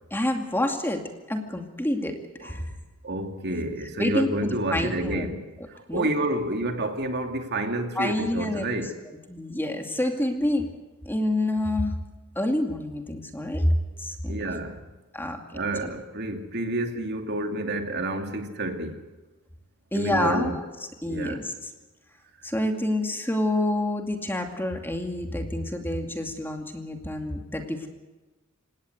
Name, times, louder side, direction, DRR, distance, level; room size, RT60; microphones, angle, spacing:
voice 1, 0.1-1.0 1.3-2.7 4.0-5.3 5.9-6.1 8.0-8.7 9.3-10.7 11.0-12.0 12.4-14.4 15.1-15.4 19.9-20.7 21.0-21.5 22.4-27.9, left 1 dB, 10° left, 4 dB, 2.4 m, -27 dB
voice 2, 3.0-9.0 14.3-14.8 15.5-19.0 19.9-20.6 21.1-21.4, right 1 dB, 50° right, 5 dB, 2.5 m, -29 dB
28.0 x 17.5 x 8.0 m, 1.2 s
head